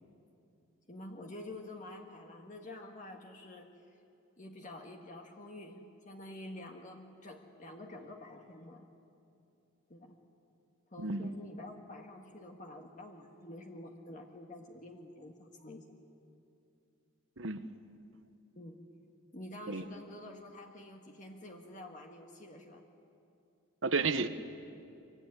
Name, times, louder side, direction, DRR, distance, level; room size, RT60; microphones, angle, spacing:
voice 1, 0.9-4.0 4.4-8.9 9.9-10.2 10.9-15.8 18.5-18.8 19.3-22.8, left 1 dB, 40° left, 2 dB, 1.6 m, -48 dB
voice 2, 11.0-11.3 17.4-17.6 19.7-19.8 23.8-24.3, right 4 dB, 70° right, 10 dB, 1.2 m, -32 dB
24.5 x 24.0 x 9.9 m, 2.6 s
head